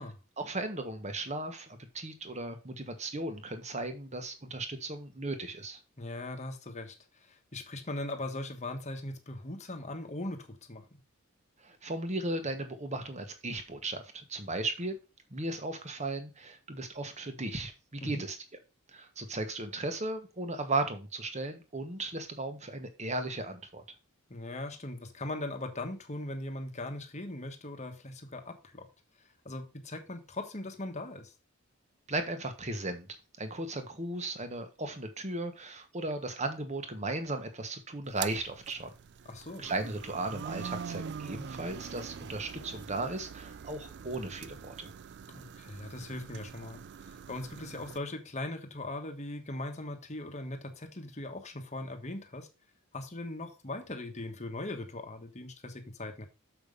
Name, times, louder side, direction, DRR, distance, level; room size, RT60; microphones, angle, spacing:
voice 1, 0.4-5.8 11.6-15.0 15.3-18.4 18.9-23.8 32.1-33.1 33.4-38.9 39.6-44.9, right 2 dB, 30° right, 1.3 m, -36 dB
voice 2, 6.0-10.8 18.0-18.2 24.3-28.9 29.2-31.3 39.2-39.7 45.3-52.5 52.9-56.3, left 2 dB, 30° left, 1.3 m, -40 dB
sound 1, 38.0-48.0, right 7 dB, 50° right, 0.4 m, -44 dB
6.9 x 5.7 x 5.2 m
head